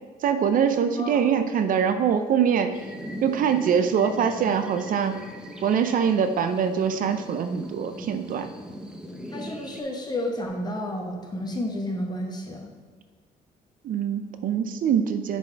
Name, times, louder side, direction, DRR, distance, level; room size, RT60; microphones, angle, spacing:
voice 1, 0.2-2.8 3.2-5.2 5.6-8.5 13.8-15.4, right 7 dB, 60° right, 9 dB, 0.5 m, -23 dB
sound 1, 2.7-9.8, equal, 5° right, 0.7 m, -39 dB
voice 2, 9.3-12.7, left 1 dB, 25° left, 1 dB, 1.2 m, -31 dB
7.2 x 4.1 x 4.5 m, 1.4 s
cardioid pair, 95°, 16 cm